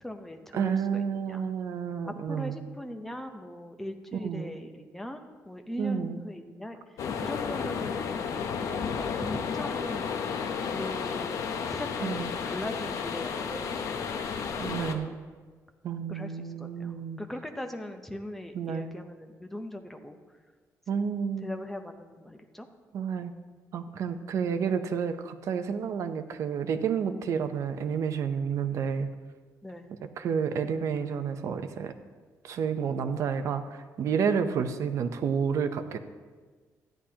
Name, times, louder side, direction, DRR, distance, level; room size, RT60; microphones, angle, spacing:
voice 1, 0.0-1.4 2.0-8.1 8.6-10.2 10.7-11.3 11.7-14.1 14.5-15.1 16.1-20.2 21.4-22.7 29.6-29.9, left 1 dB, 5° left, 5 dB, 0.6 m, -40 dB
voice 2, 0.5-2.6 4.2-4.5 5.8-6.2 12.0-12.3 14.6-15.1 15.8-17.2 18.5-18.9 20.9-21.5 22.9-23.3 23.7-29.1 30.2-31.9 32.4-36.0, right 6 dB, 55° right, 9 dB, 0.6 m, -30 dB
sound 1, 7.0-14.9, left 6 dB, 60° left, 0.7 m, -32 dB
13.0 x 10.0 x 2.8 m, 1.4 s
cardioid pair, 175°, 6 cm